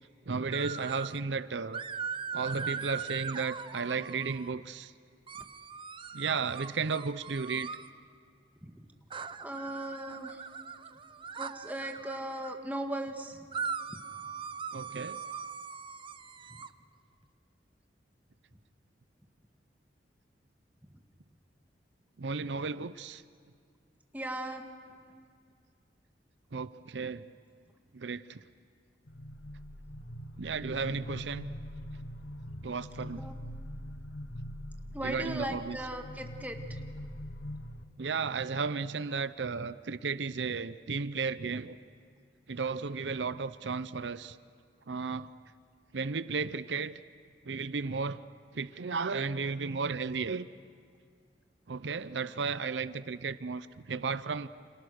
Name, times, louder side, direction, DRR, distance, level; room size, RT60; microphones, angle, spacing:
voice 1, 0.3-1.8 2.3-4.9 6.1-7.8 14.7-15.2 22.2-23.2 26.5-27.3 27.9-28.4 30.4-31.5 32.6-33.3 35.0-35.8 38.0-41.8 42.5-44.4 44.9-45.3 45.9-47.0 47.4-48.2 48.5-50.5 51.7-54.5, right 5 dB, 90° right, 14 dB, 0.7 m, -34 dB
sound 1, 0.5-1.2 1.7-4.5 5.3-7.9 9.1-12.5 13.5-16.7, right 6 dB, 30° right, 0.7 m, -40 dB
voice 2, 9.4-10.4 11.4-13.5 13.9-14.0 24.1-24.6 33.1-33.3 34.9-36.8, right 1 dB, 10° right, 4 dB, 1.7 m, -38 dB
sound 2, 29.1-37.9, equal, 85° left, 1.3 m, -43 dB
29.0 x 27.5 x 6.5 m, 2.1 s
head